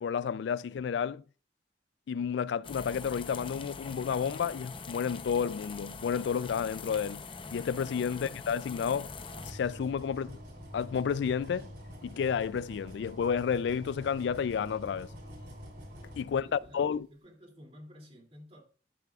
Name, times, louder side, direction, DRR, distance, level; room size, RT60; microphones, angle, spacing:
voice 1, 0.0-1.2 2.1-7.2 7.5-9.2 9.4-10.4 10.7-11.7 12.0-15.1 16.2-17.1, left 7 dB, 75° left, 0.3 m, -31 dB
sound 1, 2.6-9.5, left 4 dB, 30° left, 0.7 m, -43 dB
sound 2, 9.1-17.0, equal, 60° right, 3.2 m, -47 dB
voice 2, 16.3-18.6, equal, 35° right, 2.7 m, -53 dB
11.5 x 10.5 x 2.4 m
head